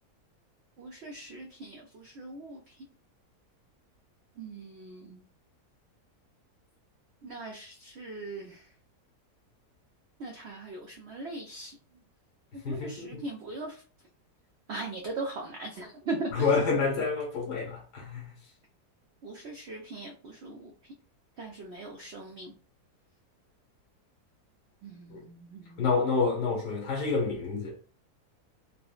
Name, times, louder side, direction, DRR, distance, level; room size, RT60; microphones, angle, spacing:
voice 1, 0.8-2.8 4.4-5.2 7.2-8.7 10.2-11.8 12.5-13.8 14.7-16.5 19.2-20.7 21.4-22.5 24.8-25.8, right 2 dB, 90° right, 0.5 m, -40 dB
voice 2, 12.6-13.2 16.3-18.3 25.1-25.2 25.8-27.8, left 4 dB, 85° left, 1.6 m, -28 dB
3.6 x 2.0 x 2.4 m
omnidirectional pair, 1.7 m